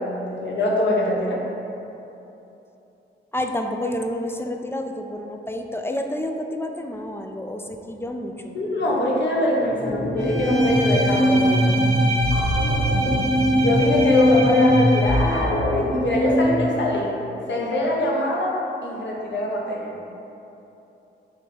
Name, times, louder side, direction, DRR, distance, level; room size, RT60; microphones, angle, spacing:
voice 1, 0.0-1.4 8.5-11.7 13.6-17.1 17.5-18.6 18.8-20.0, left 1 dB, 65° left, -3 dB, 0.9 m, -23 dB
voice 2, 3.3-8.6, left 1 dB, 10° left, 4 dB, 0.3 m, -29 dB
sound 1, 9.6-16.7, equal, 40° left, 1.4 m, -21 dB
Bowed string instrument, 10.2-15.5, right 1 dB, 90° right, 1.1 m, -28 dB
3.6 x 3.2 x 3.9 m, 2.9 s
supercardioid pair, 55°, 20 cm